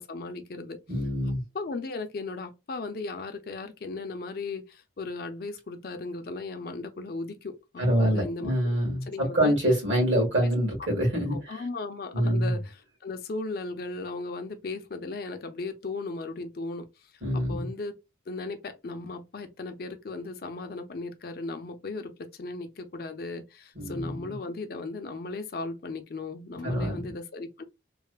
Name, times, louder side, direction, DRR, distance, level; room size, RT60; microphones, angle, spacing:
voice 1, 0.0-0.8 1.3-8.6 9.1-9.5 11.3-16.9 17.3-18.0 18.3-27.6, left 3 dB, 50° left, 0.4 m, -36 dB
voice 2, 0.9-1.4 7.8-11.6 12.1-12.5 17.2-17.7 23.7-24.3 26.6-27.0, equal, 75° right, 1.5 m, -26 dB
3.1 x 2.0 x 2.2 m
head